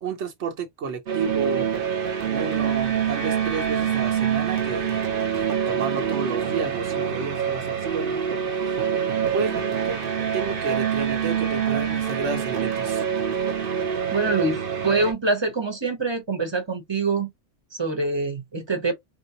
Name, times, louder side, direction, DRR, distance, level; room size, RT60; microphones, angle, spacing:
voice 1, 0.0-1.7 2.3-5.0 5.3-8.2 8.6-8.8 9.3-10.0 10.3-13.0, right 5 dB, 70° right, 1.1 m, -31 dB
sound 1, 1.1-15.1, right 8 dB, 55° right, 0.8 m, -25 dB
voice 2, 14.1-14.6 14.8-17.3 17.7-18.9, right 3 dB, 25° right, 0.9 m, -24 dB
3.8 x 2.0 x 2.8 m
omnidirectional pair, 1.2 m